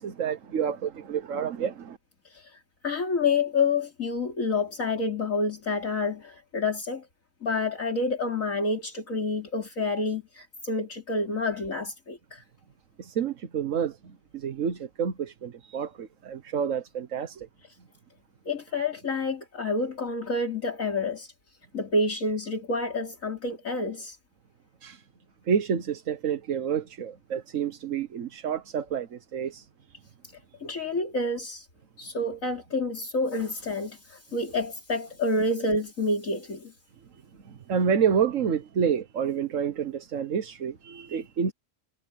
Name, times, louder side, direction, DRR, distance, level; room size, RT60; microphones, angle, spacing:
voice 1, 0.0-2.0 13.0-13.9 14.3-17.5 24.8-25.0 25.5-29.6 37.5-41.5, right 7 dB, 60° right, 1.4 m, -29 dB
voice 2, 2.3-7.1 7.4-12.4 18.5-21.3 21.7-24.2 30.6-31.7 32.0-36.7, left 3 dB, 60° left, 3.6 m, -28 dB
omnidirectional pair, 1.5 m